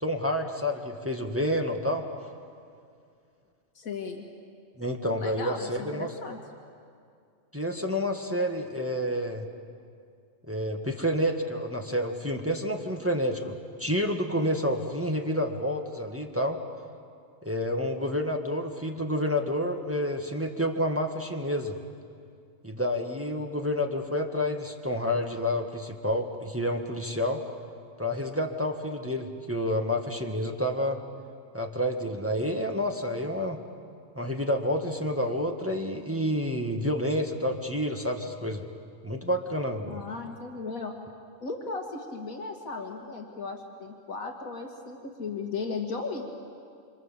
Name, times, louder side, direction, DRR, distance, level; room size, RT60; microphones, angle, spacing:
voice 1, 0.0-2.0 4.8-6.1 7.5-9.5 10.5-16.6 17.4-21.8 22.6-27.4 28.0-31.0 31.5-33.6 34.1-38.6 39.0-40.0, equal, 10° right, 3 dB, 1.5 m, -29 dB
voice 2, 3.8-4.3 5.2-6.4 39.9-41.0 41.4-46.3, left 4 dB, 85° left, 2 dB, 2.3 m, -36 dB
27.0 x 26.5 x 7.4 m, 2.3 s
omnidirectional pair, 1.4 m